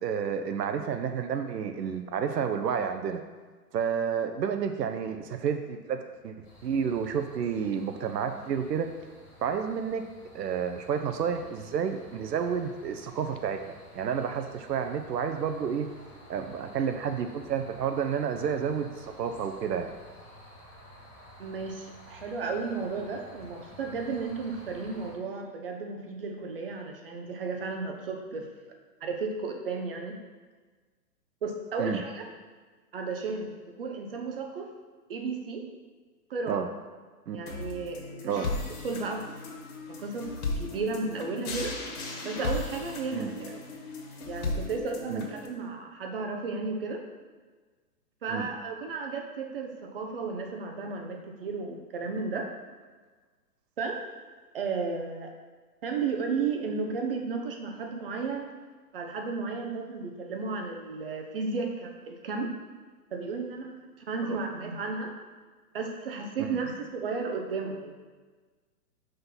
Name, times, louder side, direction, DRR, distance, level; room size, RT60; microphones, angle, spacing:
voice 1, 0.0-3.2 3.7-6.4 6.6-8.9 9.4-10.1 10.3-15.9 16.3-19.9 31.8-32.0 36.5-36.7 37.3-37.5 38.2-38.5 43.1-43.3 45.1-45.2 48.3-48.5 64.2-64.4 66.4-66.6, right 7 dB, 90° right, 6 dB, 0.8 m, -30 dB
sound 1, 6.4-25.1, equal, 25° left, 1.6 m, -52 dB
voice 2, 21.4-28.5 29.0-30.2 31.4-32.3 32.9-34.7 35.1-35.6 36.3-36.6 37.3-38.4 38.8-39.2 40.0-40.3 40.6-41.7 42.2-43.6 44.3-47.0 48.2-52.5 53.8-54.0 54.5-55.3 55.8-58.5 58.9-62.5 63.1-65.1 65.7-67.9, right 4 dB, 35° right, 3 dB, 0.7 m, -33 dB
sound 2, 37.5-45.5, left 3 dB, 60° left, 1.7 m, -36 dB
5.8 x 3.9 x 5.6 m, 1.4 s
hypercardioid pair, 165°, 47 cm